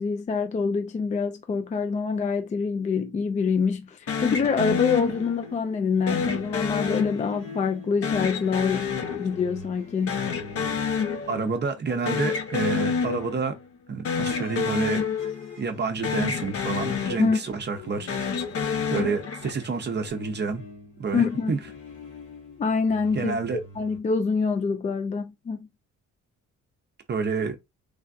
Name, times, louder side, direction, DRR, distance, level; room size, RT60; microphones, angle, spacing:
voice 1, 0.0-10.3 17.2-17.4 21.1-21.5 22.6-23.4 23.8-25.7, left 5 dB, 25° left, 0.3 m, -26 dB
sound 1, 4.1-5.6 6.1-7.6 8.0-9.8 10.1-11.6 11.9-13.6 14.0-15.8 16.0-17.6 18.0-19.7, left 6 dB, 50° left, 0.7 m, -29 dB
sound 2, 4.3-11.8 12.1-13.7 14.2-24.0, left 3 dB, 85° left, 1.8 m, -46 dB
voice 2, 11.3-13.6 13.9-15.1 15.6-18.2 18.9-20.6 21.0-21.6 23.1-23.6 27.1-27.6, right 4 dB, 35° right, 0.6 m, -29 dB
3.3 x 2.5 x 2.4 m
cardioid pair, 90°, 30 cm